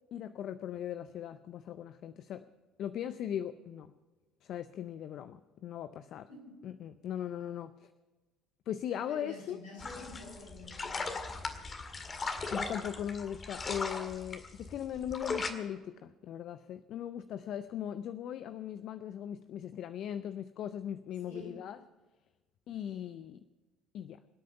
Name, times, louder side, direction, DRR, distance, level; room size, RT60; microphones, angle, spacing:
voice 1, 0.1-2.5 2.8-3.9 4.4-6.3 6.6-7.9 8.7-9.6 12.5-21.8 22.7-23.4 23.9-24.2, left 10 dB, 60° left, 13 dB, 0.5 m, -39 dB
voice 2, 6.3-6.7 9.1-12.5 21.2-21.6 22.9-23.1, left 2 dB, 85° left, -2 dB, 5.9 m, -50 dB
sound 1, 9.8-15.5, left 4 dB, 35° left, 1.9 m, -38 dB
25.0 x 8.4 x 5.7 m, 1.2 s
hypercardioid pair, 60°, 0 cm